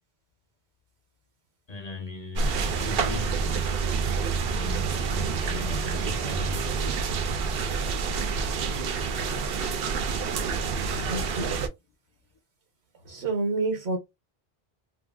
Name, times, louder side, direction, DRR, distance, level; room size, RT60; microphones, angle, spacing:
voice 1, 1.7-3.8 4.5-7.1 11.6-11.7, left 4 dB, 45° left, 0.8 m, -39 dB
sound 1, 2.4-11.7, right 5 dB, 70° right, 0.8 m, -28 dB
voice 2, 11.1-11.6 13.0-14.0, right 3 dB, 85° right, 1.3 m, -28 dB
2.9 x 2.6 x 2.3 m
omnidirectional pair, 1.1 m